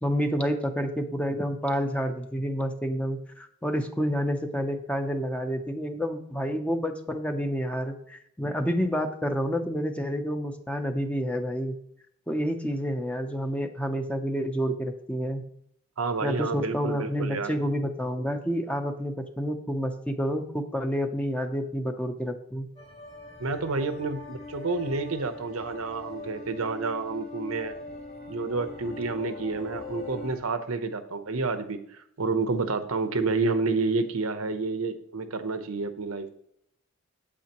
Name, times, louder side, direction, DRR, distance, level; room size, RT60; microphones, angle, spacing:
voice 1, 0.0-11.8 12.3-15.4 16.2-22.7, equal, 5° left, 5 dB, 0.6 m, -29 dB
voice 2, 16.0-17.5 23.4-27.8 28.3-36.3, right 3 dB, 85° right, 9 dB, 0.9 m, -29 dB
sound 1, 22.8-30.4, left 3 dB, 30° left, 1.7 m, -42 dB
8.6 x 8.4 x 3.0 m, 0.70 s
head